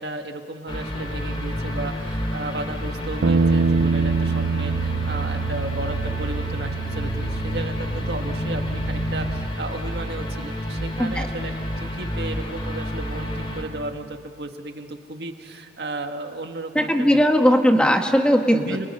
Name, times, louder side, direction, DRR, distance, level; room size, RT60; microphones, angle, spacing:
voice 1, 0.0-17.5 18.6-18.9, right 2 dB, 65° right, 5 dB, 1.8 m, -34 dB
sound 1, 0.7-13.6, equal, 30° left, 3.0 m, -29 dB
Bass guitar, 3.2-9.5, right 4 dB, 90° right, 0.6 m, -25 dB
voice 2, 16.7-18.9, equal, 5° left, 4 dB, 1.5 m, -18 dB
30.0 x 29.0 x 5.5 m, 2.3 s
head